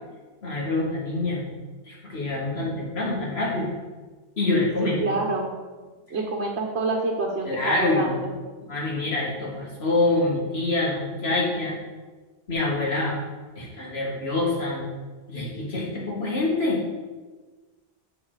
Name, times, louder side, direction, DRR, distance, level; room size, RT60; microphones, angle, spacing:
voice 1, 0.4-1.5 1.9-3.7 4.4-5.2 7.5-8.2 8.6-11.8 12.5-13.2 13.6-14.9 15.3-16.8, left 2 dB, 70° left, -4 dB, 2.3 m, -26 dB
voice 2, 4.8-5.5 6.1-8.3, right 3 dB, 85° right, -1 dB, 1.2 m, -27 dB
7.6 x 6.8 x 4.0 m, 1.3 s
omnidirectional pair, 1.1 m